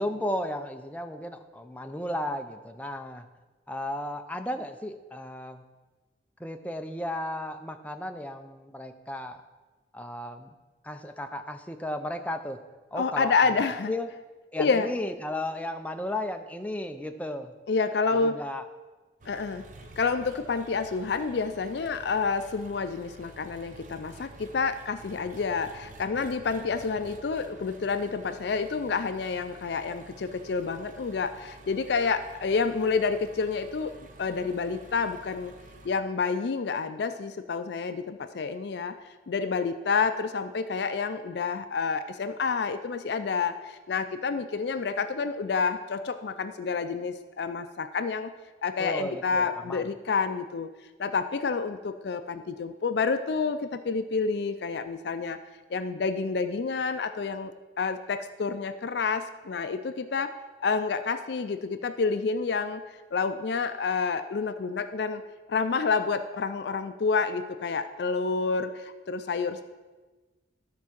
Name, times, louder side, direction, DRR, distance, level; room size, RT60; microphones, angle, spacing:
voice 1, 0.0-3.3 3.7-5.6 6.4-9.4 9.9-10.5 10.8-12.6 12.9-13.6 13.9-14.1 14.5-17.5 18.1-18.7 48.8-49.9, left 1 dB, 10° left, 6 dB, 0.5 m, -34 dB
voice 2, 13.0-13.9 14.6-14.9 17.7-18.4 19.3-19.6 20.0-35.5 35.8-39.0 39.3-48.3 48.6-50.7 51.0-55.4 55.7-60.3 60.6-62.8 63.1-65.2 65.5-69.6, left 4 dB, 60° left, 10 dB, 0.4 m, -29 dB
Engine, 19.2-35.9, right 2 dB, 45° right, 0.8 m, -50 dB
12.5 x 4.6 x 5.9 m, 1.2 s
head